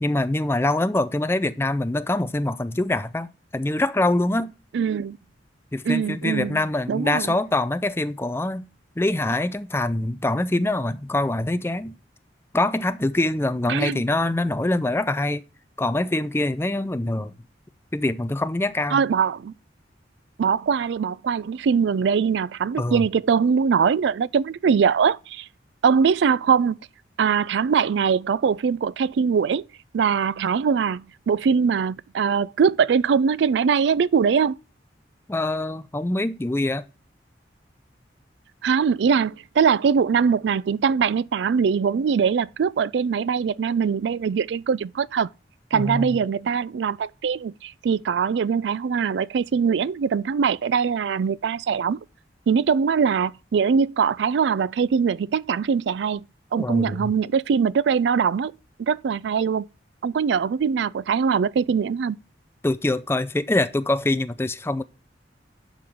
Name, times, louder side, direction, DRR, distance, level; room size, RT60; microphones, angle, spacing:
voice 1, 0.0-4.5 5.7-8.7 9.0-11.9 12.5-15.4 15.8-17.3 17.9-19.0 22.8-23.1 35.3-36.8 45.7-46.2 56.6-57.1 62.6-64.8, left 2 dB, 15° left, 0.4 m, -24 dB
voice 2, 4.7-5.2 5.9-6.6 6.9-7.3 13.7-14.0 18.9-19.5 20.4-25.5 25.8-26.8 27.2-29.7 29.9-34.6 38.6-45.3 45.7-52.0 52.5-56.2 56.5-58.5 58.8-59.6 60.0-62.2, right 6 dB, 70° right, 0.3 m, -22 dB
11.0 x 3.8 x 6.2 m
head